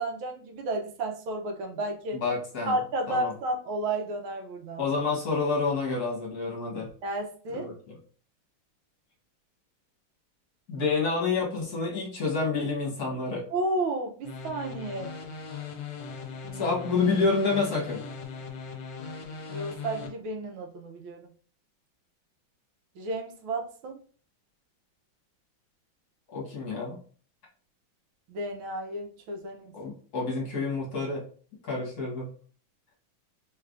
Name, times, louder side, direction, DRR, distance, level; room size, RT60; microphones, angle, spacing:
voice 1, 0.0-2.2 2.7-4.8 7.0-7.7 13.5-15.1 16.4-16.7 19.5-21.3 23.0-24.0 28.3-29.7, right 2 dB, 90° right, 3 dB, 1.6 m, -32 dB
voice 2, 2.1-2.8 3.1-3.3 4.8-6.9 7.5-8.0 10.7-13.4 16.5-18.0 26.3-27.0 29.7-31.2 31.6-32.3, left 4 dB, 55° left, -2 dB, 1.5 m, -28 dB
sound 1, 14.2-20.1, left 6 dB, 75° left, 1.3 m, -39 dB
3.7 x 3.3 x 2.4 m, 0.43 s
omnidirectional pair, 2.2 m